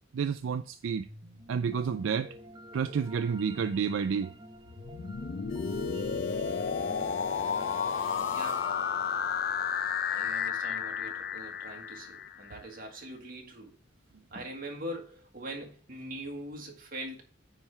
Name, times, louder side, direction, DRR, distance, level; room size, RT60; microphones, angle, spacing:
voice 1, 0.1-1.1 1.5-2.3 2.7-4.3, right 6 dB, 75° right, 0.4 m, -30 dB
sound 1, 1.0-10.2, right 1 dB, 25° right, 0.7 m, -51 dB
sound 2, 4.7-12.6, left 6 dB, 50° left, 0.5 m, -32 dB
sound 3, 5.5-9.4, left 9 dB, 70° left, 1.0 m, -46 dB
voice 2, 8.2-8.7 10.1-13.8 14.3-17.2, right 1 dB, 50° right, 1.8 m, -42 dB
9.0 x 3.4 x 5.7 m
head